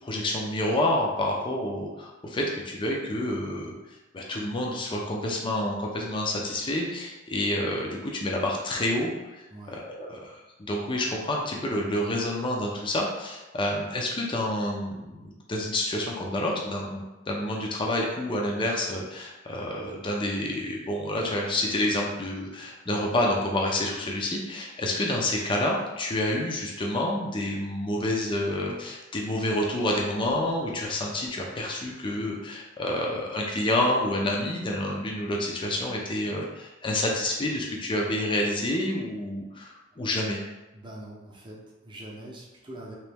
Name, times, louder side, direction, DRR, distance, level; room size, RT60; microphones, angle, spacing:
voice 1, 0.0-3.7 4.1-9.5 9.7-40.4, left 1 dB, 25° left, -1 dB, 0.5 m, -28 dB
voice 2, 9.5-9.8 40.7-43.0, right 1 dB, 25° right, -3 dB, 0.7 m, -43 dB
3.1 x 3.0 x 3.4 m, 1.0 s
head